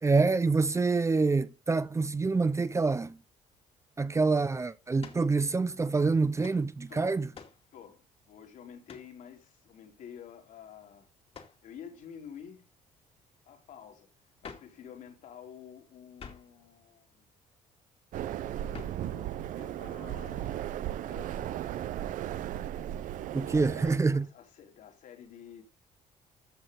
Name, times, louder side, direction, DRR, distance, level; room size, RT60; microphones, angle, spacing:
voice 1, 0.0-3.2 4.0-7.3 23.3-24.3, right 4 dB, 20° right, 0.7 m, -26 dB
sound 1, 5.0-5.3 6.4-6.6 7.3-7.6 8.9-9.1 11.3-11.6 14.4-14.8 16.2-16.6 18.7-19.1, left 6 dB, 45° left, 2.4 m, -47 dB
voice 2, 6.9-7.2 7.7-11.1 11.6-12.7 13.4-14.1 14.4-17.3 18.8-20.6 20.9-22.4 23.2-25.6, left 8 dB, 70° left, 3.7 m, -50 dB
sound 2, 18.1-24.0, right 12 dB, 70° right, 0.8 m, -36 dB
14.0 x 6.9 x 3.9 m
cardioid pair, 95°, 14 cm